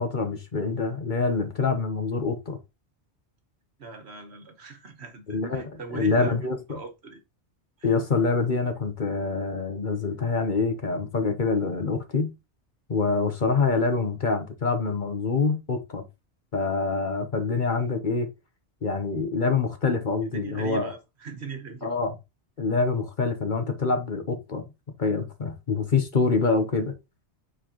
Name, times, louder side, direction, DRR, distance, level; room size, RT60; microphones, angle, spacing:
voice 1, 0.0-2.6 5.3-6.8 7.8-12.3 12.9-16.0 16.5-18.3 18.8-20.9 21.8-22.1 22.6-24.6 25.0-26.9, left 4 dB, 45° left, 1.1 m, -26 dB
voice 2, 3.8-7.2 7.8-7.9 20.3-21.9, right 4 dB, 70° right, 1.5 m, -40 dB
7.4 x 4.5 x 3.0 m
omnidirectional pair, 1.2 m